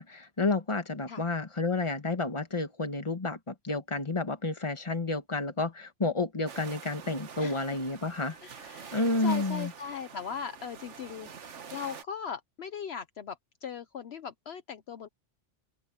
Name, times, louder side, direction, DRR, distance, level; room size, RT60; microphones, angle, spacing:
voice 1, 0.0-8.4 8.9-9.7, left 3 dB, 25° left, 1.5 m, -30 dB
sound 1, 6.5-12.0, right 6 dB, 80° right, 1.5 m, -46 dB
voice 2, 8.4-15.1, left 7 dB, 65° left, 1.0 m, -39 dB
open air
omnidirectional pair, 1.2 m